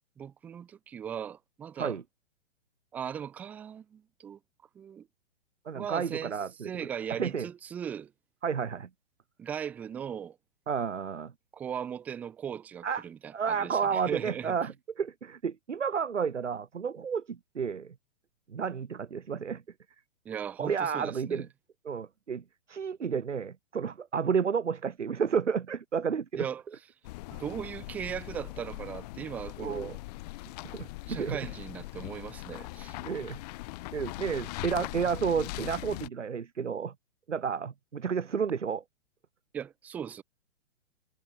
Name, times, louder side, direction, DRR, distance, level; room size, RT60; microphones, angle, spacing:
voice 1, 0.2-2.0 2.9-4.4 4.8-5.1 5.7-6.4 6.6-8.1 9.4-10.4 11.5-14.6 20.3-21.5 26.3-26.6 27.3-30.0 31.1-33.0 39.5-40.2, right 8 dB, 5° right, 0.4 m, -38 dB
voice 2, 5.7-6.7 7.2-7.5 8.4-8.9 10.7-11.3 12.8-13.0 13.3-17.9 18.5-19.6 20.6-21.5 21.8-26.5 27.3-27.4 29.6-29.9 30.6-31.5 33.0-33.4 33.9-36.9 37.3-38.8, right 6 dB, 85° right, 0.9 m, -31 dB
sound 1, 27.0-36.1, left 21 dB, 35° left, 1.0 m, -41 dB
figure-of-eight pair, 115°, 35 cm